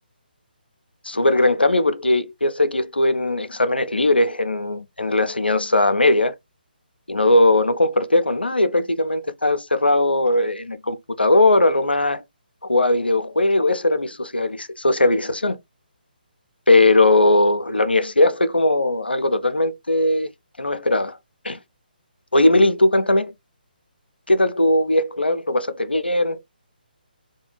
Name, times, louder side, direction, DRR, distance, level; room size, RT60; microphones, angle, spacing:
voice 1, 1.0-6.4 7.1-12.2 12.7-15.6 16.7-20.3 20.6-21.2 21.4-21.6 22.3-23.3 24.3-26.5, left 2 dB, 90° left, 0.4 m, -19 dB
2.4 x 2.2 x 3.0 m
figure-of-eight pair, 145°, 5 cm